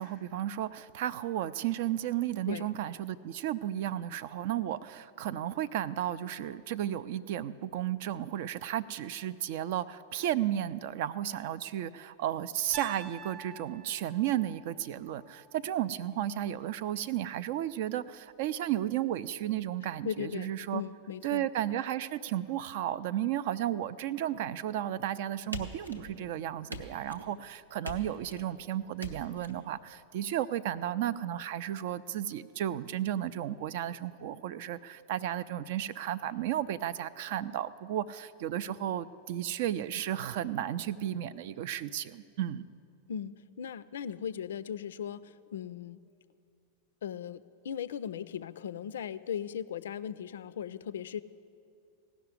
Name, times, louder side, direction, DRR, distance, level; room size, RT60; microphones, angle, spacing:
voice 1, 0.0-20.8 21.2-42.6, right 11 dB, 50° right, 16 dB, 0.4 m, -33 dB
Piano, 12.7-16.8, right 5 dB, 15° right, 0.7 m, -49 dB
voice 2, 20.0-21.5 43.1-46.0 47.0-51.2, left 8 dB, 60° left, 16 dB, 0.3 m, -38 dB
sound 1, 25.5-26.3 26.7-27.3 27.8-28.5 29.0-29.5, equal, 90° right, 0.9 m, -42 dB
16.5 x 6.1 x 9.6 m, 2.5 s
figure-of-eight pair, 90°, 0 cm